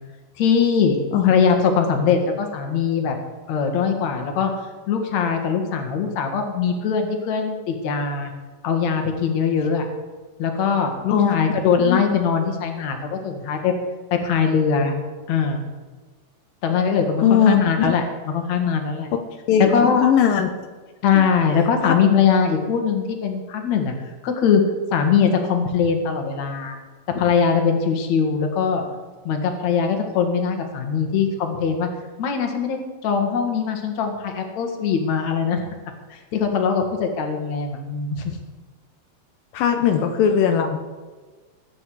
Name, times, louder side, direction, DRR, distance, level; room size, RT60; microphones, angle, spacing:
voice 1, 0.4-1.0 1.2-3.2 3.5-4.5 4.9-8.3 8.6-9.9 10.4-13.7 14.1-15.0 15.3-15.6 16.6-19.1 19.6-20.1 21.0-23.9 24.2-24.7 24.9-26.8 27.1-28.8 29.2-31.9 32.2-35.6 36.1-38.2, left 6 dB, 60° left, 4 dB, 2.8 m, -21 dB
voice 2, 17.2-17.6 19.5-20.5 21.1-21.2 21.9-22.0 39.5-40.8, left 8 dB, 80° left, 5 dB, 2.6 m, -19 dB
20.0 x 8.8 x 4.8 m, 1.4 s
omnidirectional pair, 3.9 m